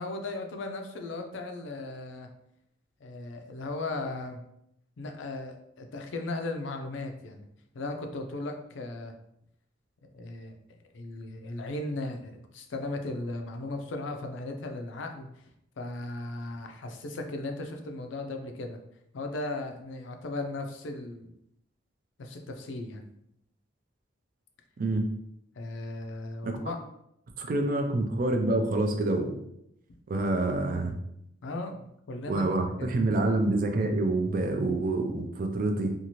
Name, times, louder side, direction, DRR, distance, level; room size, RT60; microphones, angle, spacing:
voice 1, 0.0-2.3 3.0-4.4 5.0-7.5 7.7-9.1 10.1-10.6 10.9-15.4 15.8-18.8 19.1-21.3 22.2-23.1 25.6-26.8 31.4-32.9, left 2 dB, 65° left, 5 dB, 0.4 m, -37 dB
voice 2, 24.8-25.1 26.4-26.6 27.4-29.3 30.1-30.9 32.3-35.9, right 2 dB, 45° right, 4 dB, 0.4 m, -27 dB
2.7 x 2.4 x 2.9 m, 0.77 s
head